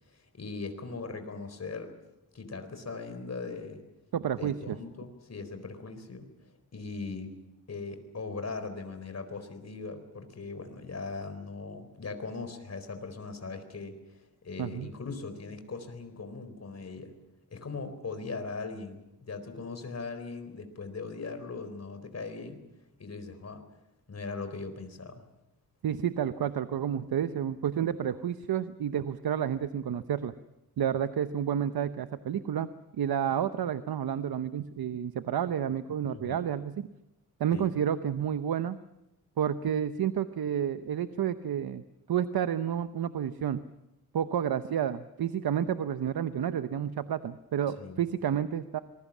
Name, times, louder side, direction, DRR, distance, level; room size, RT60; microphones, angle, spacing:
voice 1, 0.1-1.9 2.3-3.8 4.3-6.3 6.7-7.3 7.7-17.1 17.5-22.6 23.0-23.6 24.1-25.2 36.1-36.4 37.5-37.8 47.8-48.0, left 4 dB, 45° left, 8 dB, 4.2 m, -39 dB
voice 2, 4.1-4.8 14.6-14.9 25.8-30.3 30.8-32.7 33.0-36.9 37.4-38.8 39.4-41.8 42.1-43.6 44.1-48.8, right 9 dB, 80° right, 11 dB, 0.9 m, -30 dB
26.0 x 21.5 x 7.4 m, 0.91 s
wide cardioid pair, 110°, 36 cm